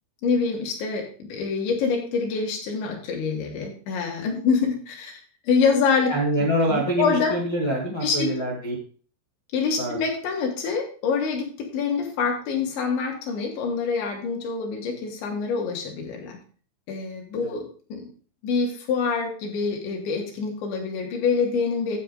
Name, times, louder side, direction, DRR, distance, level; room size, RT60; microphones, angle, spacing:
voice 1, 0.2-5.2 5.5-6.1 6.7-7.4 8.0-8.3 9.5-16.4 16.9-18.1 18.4-22.0, left 5 dB, 70° left, 1 dB, 4.2 m, -26 dB
voice 2, 6.1-8.7 9.8-10.0 17.4-17.5, right 1 dB, 50° left, -2 dB, 1.4 m, -25 dB
9.9 x 7.9 x 3.8 m, 0.41 s
omnidirectional pair, 5.5 m